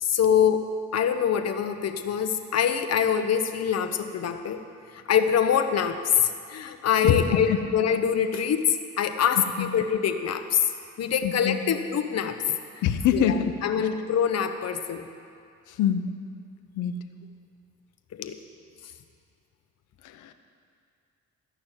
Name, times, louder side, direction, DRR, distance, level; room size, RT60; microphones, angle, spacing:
voice 1, 0.0-0.6 0.9-4.7 4.9-10.7 11.0-12.6 13.1-15.1 18.1-18.4 18.8-18.9, left 8 dB, 55° left, 8 dB, 0.9 m, -25 dB
voice 2, 7.0-7.6 9.6-9.7 11.2-11.6 12.8-13.5 15.7-16.1 16.7-17.0 20.0-20.3, left 9 dB, 85° left, 9 dB, 0.8 m, -24 dB
13.5 x 6.0 x 9.0 m, 2.3 s
cardioid pair, 90°, 30 cm